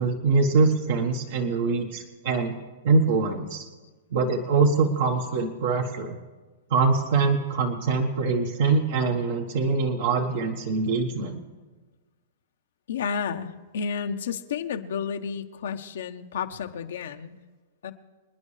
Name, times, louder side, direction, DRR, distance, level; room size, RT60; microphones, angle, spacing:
voice 1, 0.0-2.6 2.8-3.6 4.1-6.1 6.7-11.4, right 4 dB, 65° right, 2 dB, 1.4 m, -23 dB
voice 2, 12.9-17.4 17.8-17.9, left 6 dB, 75° left, 6 dB, 1.0 m, -31 dB
26.5 x 9.9 x 3.3 m, 1.3 s
hypercardioid pair, 145°, 0 cm